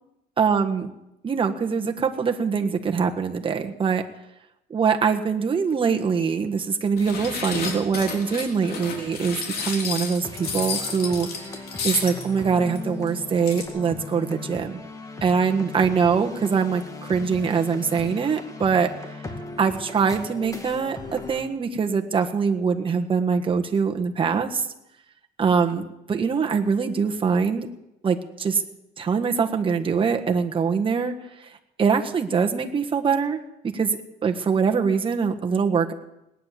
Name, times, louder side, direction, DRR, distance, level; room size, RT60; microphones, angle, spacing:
voice 1, 0.4-0.9 1.2-4.0 4.7-11.3 11.8-14.8 15.2-18.9 19.6-24.7 25.4-27.7 28.0-28.6 29.0-31.1 31.4-31.5 31.8-35.9, right 6 dB, 30° right, 4 dB, 1.6 m, -23 dB
sound 1, 7.0-12.3 12.7-12.8 13.1-13.2 13.4-13.6, left 5 dB, 65° left, 3.5 m, -31 dB
sound 2, 10.2-21.4, left 2 dB, 20° left, 2.3 m, -38 dB
18.5 x 9.9 x 7.6 m, 0.87 s
cardioid pair, 110°, 17 cm